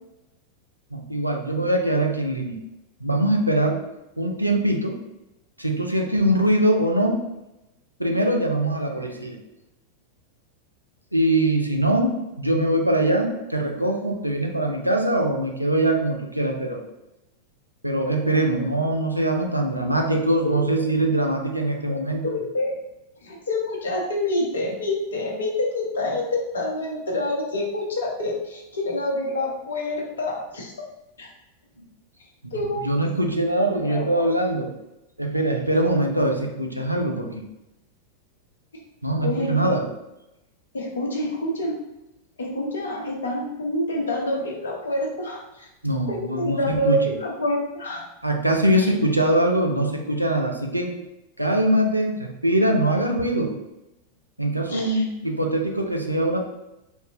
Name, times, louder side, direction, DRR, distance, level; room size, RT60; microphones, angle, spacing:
voice 1, 0.9-2.6 3.0-3.8 4.2-5.0 5.6-7.2 8.0-9.4 11.1-16.8 17.8-22.3 32.4-32.5 32.8-34.7 35.2-37.4 39.0-39.9 45.8-47.0 48.2-50.9 51.4-53.5 54.4-56.4, right 1 dB, 90° right, 2 dB, 0.5 m, -22 dB
voice 2, 21.9-22.7 23.2-30.7 31.2-31.3 32.5-32.9 33.8-34.2 39.2-39.6 40.7-41.8 42.4-45.7 46.1-48.1 48.8-48.9 54.7-55.0, left 1 dB, 65° left, -1 dB, 0.8 m, -27 dB
3.5 x 2.7 x 2.6 m, 0.93 s
figure-of-eight pair, 90°, 0 cm